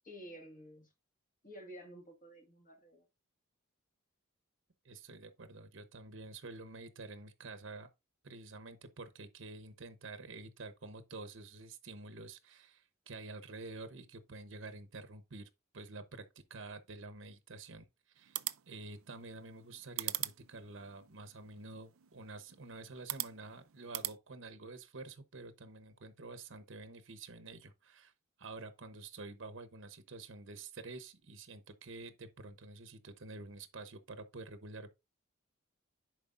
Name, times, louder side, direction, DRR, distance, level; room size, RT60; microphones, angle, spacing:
voice 1, 0.0-0.9 1.4-3.0, equal, 40° left, 1.8 m, -51 dB
voice 2, 4.8-7.9 8.2-15.5 15.7-28.1 28.4-34.9, right 3 dB, 65° right, 0.9 m, -49 dB
sound 1, 18.2-24.2, right 17 dB, 80° right, 0.5 m, -43 dB
11.0 x 4.8 x 2.5 m
head